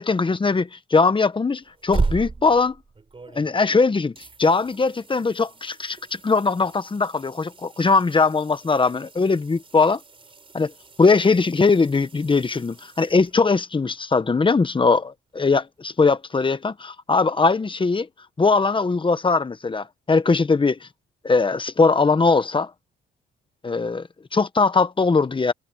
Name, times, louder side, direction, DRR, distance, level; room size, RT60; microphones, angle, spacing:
voice 1, 0.0-2.7 3.3-4.1 4.4-10.0 10.5-10.7 11.0-18.1 18.4-20.8 21.2-22.7 23.6-25.5, left 4 dB, 25° left, 1.3 m, -20 dB
sound 1, 1.6-3.8 4.2-13.7 16.5-16.6, right 4 dB, 25° right, 4.3 m, -35 dB
cardioid pair, 90°, 20 cm